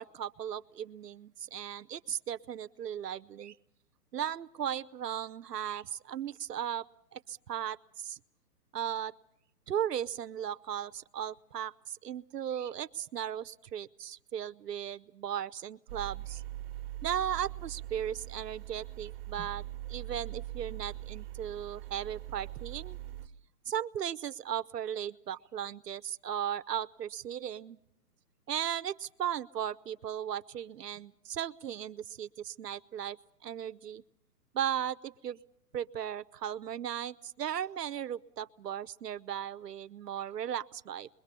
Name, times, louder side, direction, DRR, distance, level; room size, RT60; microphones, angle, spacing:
voice 1, 0.0-3.6 4.1-6.9 7.1-8.2 8.7-9.1 9.7-16.4 17.0-23.0 23.7-27.8 28.5-33.2 33.4-34.0 34.5-35.4 35.7-41.1, right 9 dB, 80° right, 13 dB, 0.9 m, -36 dB
sound 1, 15.9-23.3, right 14 dB, 35° right, 1.3 m, -42 dB
26.5 x 22.0 x 6.8 m, 0.79 s
hypercardioid pair, 140°, 48 cm